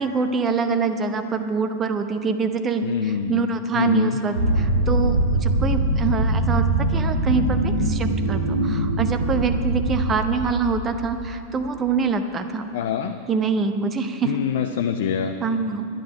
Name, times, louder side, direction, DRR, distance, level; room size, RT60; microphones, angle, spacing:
voice 1, 0.0-12.7 13.3-14.4 15.4-15.9, right 5 dB, 25° right, 8 dB, 0.8 m, -25 dB
voice 2, 2.8-3.4 3.7-4.2 12.7-13.2 14.2-15.3, left 8 dB, 55° left, 6 dB, 0.5 m, -25 dB
sound 1, 4.3-11.1, right 2 dB, 75° right, 1.1 m, -22 dB
11.5 x 10.5 x 5.4 m, 2.6 s
figure-of-eight pair, 90°, 0 cm